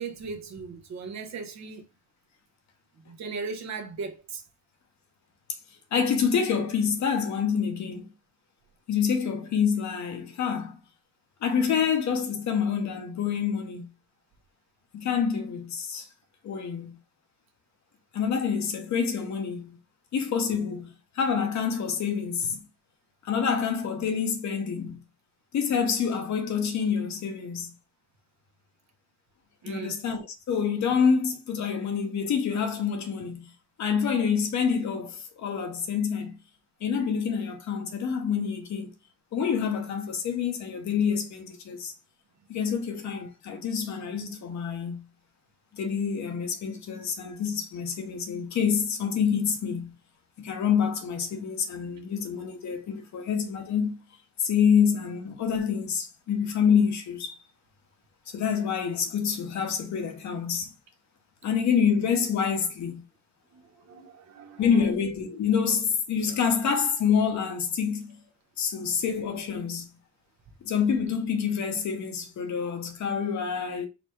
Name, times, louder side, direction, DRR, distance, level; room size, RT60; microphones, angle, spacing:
voice 1, 0.0-1.9 3.1-4.4 29.6-30.0 63.5-64.9 66.3-66.4 66.6-66.7, right 4 dB, 65° right, 1.1 m, -38 dB
voice 2, 5.9-8.1 8.9-10.8 11.4-13.9 14.9-16.1 16.4-17.0 18.1-19.8 20.1-20.9 21.2-22.6 23.2-25.0 25.5-27.7 29.7-33.5 33.8-36.3 36.8-38.9 39.3-41.9 42.5-45.0 45.7-49.9 50.4-54.0 54.4-57.4 58.3-60.7 61.4-63.0 64.6-68.2 68.6-69.9 70.6-73.9, left 7 dB, 65° left, 1.0 m, -27 dB
4.1 x 2.2 x 4.5 m
cardioid pair, 90°, 30 cm